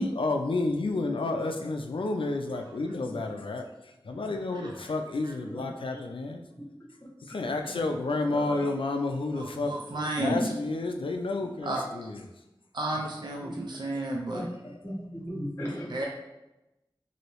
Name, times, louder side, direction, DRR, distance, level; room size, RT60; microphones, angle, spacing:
voice 1, 0.0-3.7 4.0-6.4 7.2-12.2, left 2 dB, 75° left, 4 dB, 0.3 m, -30 dB
voice 2, 9.4-10.5 11.6-11.8 12.7-14.4 15.9-16.0, right 2 dB, 55° right, -2 dB, 0.5 m, -32 dB
voice 3, 14.8-16.1, equal, 30° left, -6 dB, 1.3 m, -36 dB
2.9 x 2.7 x 3.0 m, 0.95 s
wide cardioid pair, 45°, 9 cm